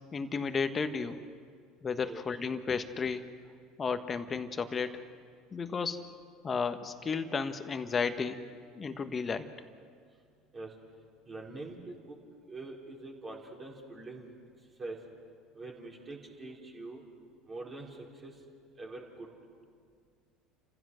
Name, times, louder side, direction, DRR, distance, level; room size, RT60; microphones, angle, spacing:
voice 1, 0.1-1.2 1.8-3.3 3.8-5.0 5.5-6.1 6.4-8.4 8.7-9.5, left 5 dB, 30° left, 9 dB, 1.5 m, -33 dB
voice 2, 11.3-12.2 12.5-14.3 14.8-15.0 15.5-17.0 17.5-18.0 18.2-18.3 18.8-19.3, right 2 dB, 30° right, -2 dB, 4.4 m, -44 dB
29.5 x 15.5 x 6.3 m, 2.1 s
hypercardioid pair, 70°, 0 cm